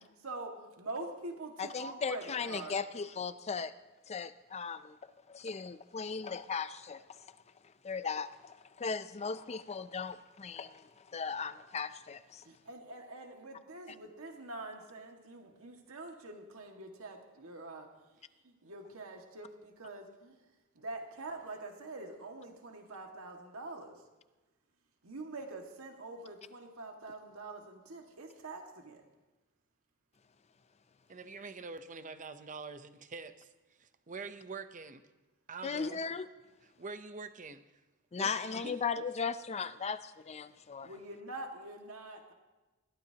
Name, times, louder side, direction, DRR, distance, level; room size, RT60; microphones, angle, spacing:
voice 1, 0.0-2.8 12.4-17.9 18.4-20.4 20.8-24.0 25.0-29.0 40.8-42.3, right 2 dB, 75° right, 2 dB, 1.9 m, -45 dB
voice 2, 1.6-3.7 4.1-5.0 5.3-7.3 7.8-12.4 35.6-36.3 38.1-40.9, left 5 dB, 30° left, 13 dB, 0.5 m, -37 dB
voice 3, 31.1-33.5 33.8-35.0 35.5-36.0 36.8-37.8 38.1-38.8, right 4 dB, 35° right, 10 dB, 0.8 m, -45 dB
21.0 x 16.0 x 2.9 m, 1.2 s
head